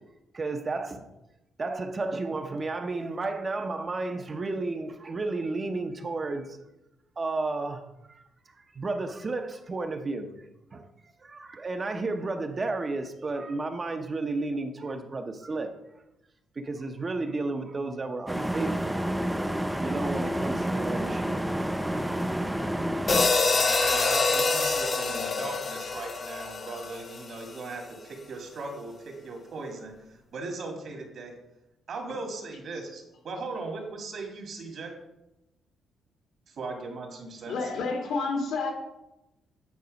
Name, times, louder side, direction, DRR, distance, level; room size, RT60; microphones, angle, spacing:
voice 1, 0.3-1.1 1.6-6.6 7.2-8.2 8.5-10.4 10.7-15.8 16.6-19.0 19.8-21.5 21.9-22.0, right 3 dB, 30° right, 6 dB, 0.7 m, -32 dB
sound 1, 18.3-23.3, right 1 dB, 5° right, 0.4 m, -29 dB
sound 2, 23.1-27.4, left 3 dB, 35° left, 0.9 m, -26 dB
voice 2, 23.5-31.4 31.9-34.9 36.5-37.5, right 3 dB, 60° right, 2 dB, 1.9 m, -38 dB
voice 3, 37.5-38.7, left 4 dB, 80° left, 1 dB, 2.1 m, -29 dB
9.4 x 4.1 x 5.2 m, 0.93 s
cardioid pair, 125°, 0 cm